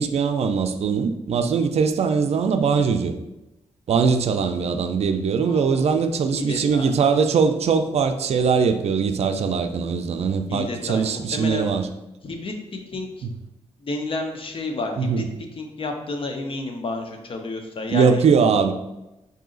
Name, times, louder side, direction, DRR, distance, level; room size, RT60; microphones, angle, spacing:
voice 1, 0.0-3.1 3.9-11.9 13.2-13.3 15.0-15.3 17.9-18.7, right 5 dB, 60° right, 7 dB, 0.4 m, -21 dB
voice 2, 5.4-5.9 6.4-6.9 10.5-11.7 12.2-12.5 12.9-13.3 13.8-15.2 15.6-18.2, left 2 dB, 50° left, 4 dB, 0.7 m, -30 dB
4.8 x 2.7 x 3.8 m, 0.96 s
cardioid pair, 100°, 12 cm